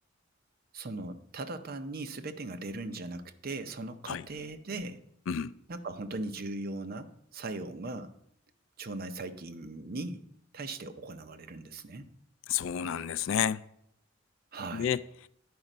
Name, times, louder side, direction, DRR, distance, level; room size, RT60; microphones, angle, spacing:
voice 1, 0.7-5.0 5.7-8.1 8.8-10.2 10.5-12.1 14.5-15.0, right 2 dB, 50° right, 0.6 m, -39 dB
voice 2, 5.3-5.6 12.5-13.6 14.7-15.3, left 8 dB, 75° left, 0.3 m, -31 dB
10.5 x 5.0 x 5.4 m
head